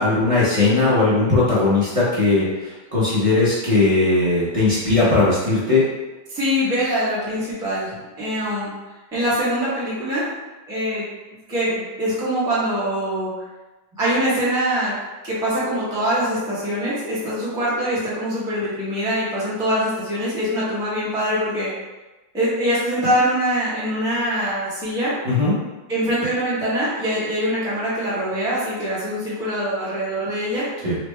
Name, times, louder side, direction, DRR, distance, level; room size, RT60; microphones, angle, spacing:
voice 1, 0.0-5.9 25.2-25.6 30.8-31.0, left 3 dB, 45° right, -9 dB, 0.4 m, -18 dB
voice 2, 6.3-8.7 9.1-10.3 10.7-11.1 11.5-13.3 14.0-14.9 15.2-21.7 22.3-25.2 25.9-30.7, equal, 5° right, -10 dB, 0.7 m, -23 dB
4.1 x 2.2 x 3.2 m, 1.2 s
omnidirectional pair, 2.0 m